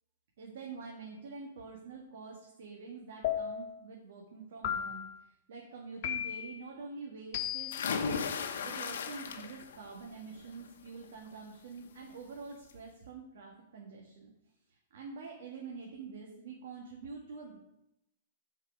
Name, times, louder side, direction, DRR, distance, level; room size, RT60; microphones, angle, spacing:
voice 1, 0.4-8.3 8.6-14.3 14.7-17.6, right 4 dB, 75° right, -1 dB, 1.6 m, -46 dB
sound 1, 3.2-3.8 4.6-5.2 6.0-6.6 7.3-7.9, left 9 dB, 50° left, 1.2 m, -35 dB
sound 2, 7.7-9.8 10.2-10.6 12.0-12.1 12.5-12.6, left 6 dB, 80° left, 0.8 m, -35 dB
8.5 x 4.7 x 6.0 m, 0.88 s
hypercardioid pair, 135°, 0 cm